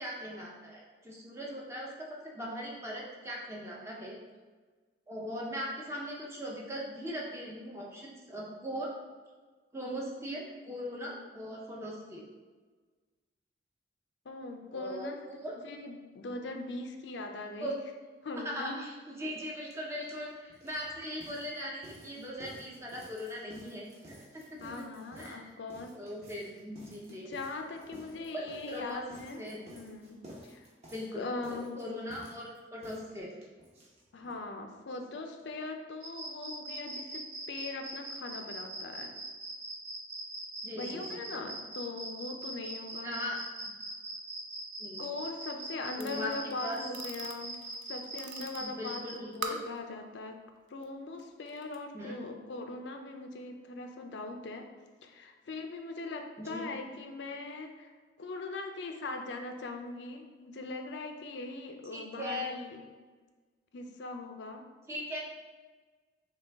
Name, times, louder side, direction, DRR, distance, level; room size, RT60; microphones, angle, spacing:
voice 1, 0.0-4.2 5.1-8.9 9.7-12.2 14.7-15.6 17.6-17.7 18.4-25.5 25.9-27.3 28.3-29.1 29.4-29.6 30.9-33.3 40.6-41.0 43.0-43.4 44.8-45.0 46.0-46.3 46.6-46.8 48.6-49.6 51.9-52.2 56.4-56.6 61.9-62.5 64.9-65.2, equal, 15° right, -3 dB, 0.6 m, -40 dB
voice 2, 14.3-15.2 15.6-17.8 18.2-18.8 24.6-25.9 27.1-29.4 29.7-30.6 31.1-31.8 34.1-39.1 40.8-43.2 45.0-47.6 47.9-50.4 50.7-54.7 55.0-57.9 58.2-62.8 63.7-64.6, left 3 dB, 70° left, 5 dB, 0.5 m, -41 dB
sound 1, 19.7-19.8 20.0-34.4 34.7-34.8 35.0-35.1 35.4-35.5, equal, 35° right, 0.9 m, -54 dB
sound 2, 36.0-49.1, right 2 dB, 65° right, 1.1 m, -41 dB
sound 3, 46.0-49.8 50.7-50.9 51.2-51.8, right 5 dB, 85° right, 0.5 m, -44 dB
6.0 x 2.3 x 3.4 m, 1.4 s
head